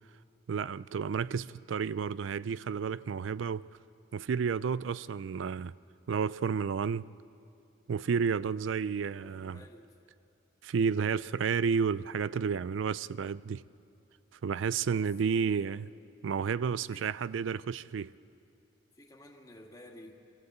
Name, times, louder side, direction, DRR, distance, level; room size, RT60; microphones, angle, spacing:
voice 1, 0.5-3.7 4.1-5.7 6.1-7.1 7.9-9.6 10.6-13.6 14.4-15.9 16.2-18.1, right 6 dB, 85° right, 0.4 m, -31 dB
voice 2, 9.1-9.9 14.9-15.9 16.9-17.1 18.9-20.2, left 1 dB, 20° left, 1.8 m, -53 dB
23.0 x 15.5 x 8.0 m
head